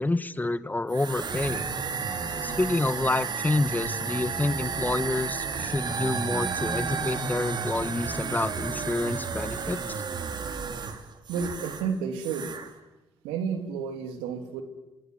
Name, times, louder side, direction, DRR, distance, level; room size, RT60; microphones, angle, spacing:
voice 1, 0.0-1.7 2.4-9.8, left 2 dB, 20° left, 15 dB, 1.5 m, -28 dB
sound 1, 0.9-11.9 12.2-12.7, right 5 dB, 50° right, 3.3 m, -32 dB
voice 2, 9.4-9.8 11.3-12.5 13.2-14.6, right 6 dB, 90° right, 7 dB, 3.0 m, -32 dB
27.5 x 25.5 x 7.9 m, 1.1 s
supercardioid pair, 55°, 9 cm